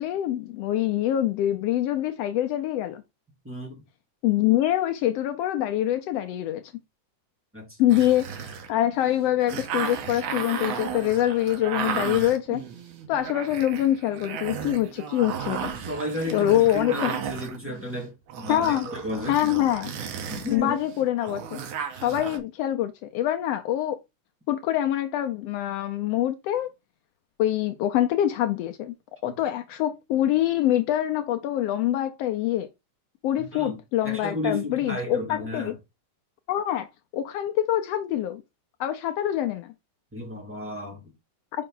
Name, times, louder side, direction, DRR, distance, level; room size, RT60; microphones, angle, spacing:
voice 1, 0.0-3.0 4.2-6.6 7.8-12.6 13.1-15.7 16.3-17.1 18.5-18.9 19.3-19.9 20.5-21.6 22.0-24.0 24.5-26.7 27.4-28.9 29.2-32.7 33.2-35.7 36.5-36.9 37.1-38.4 38.8-39.7, left 12 dB, 90° left, 1.3 m, -25 dB
voice 2, 3.4-3.8 7.5-7.8 15.5-19.4 20.3-20.8 29.3-29.4 33.4-33.8 34.0-35.8 40.1-41.1, left 1 dB, 5° right, 1.6 m, -33 dB
sound 1, 7.9-22.4, right 7 dB, 70° right, 2.5 m, -34 dB
5.6 x 5.4 x 3.8 m
omnidirectional pair, 3.6 m